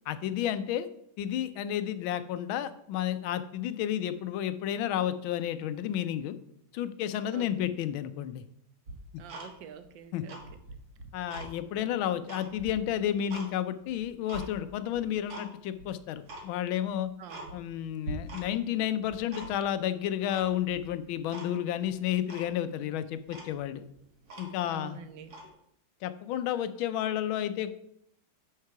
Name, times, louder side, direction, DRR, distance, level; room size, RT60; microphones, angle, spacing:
voice 1, 0.1-0.9 1.2-6.4 6.7-8.4 10.1-10.2 11.1-17.1 17.5-23.8 24.4-25.0 26.0-27.7, left 10 dB, 80° left, 12 dB, 1.4 m, -31 dB
voice 2, 7.3-7.8 9.2-10.4 17.2-17.6 24.6-25.3, right 7 dB, 70° right, 10 dB, 1.3 m, -46 dB
Tick-tock, 8.9-9.9 10.2-11.5 11.9-13.5 13.9-14.5 14.9-15.5 15.8-15.9 16.2-16.5 16.9-17.0 17.3-17.8 18.0-18.7 19.0-19.8 20.3-20.9 21.3-21.5 21.8-21.9 22.3-22.5 23.0-23.1 23.3-24.8 25.2-25.5, right 2 dB, 50° right, 2.0 m, -43 dB
7.6 x 5.7 x 4.7 m, 0.73 s
omnidirectional pair, 2.2 m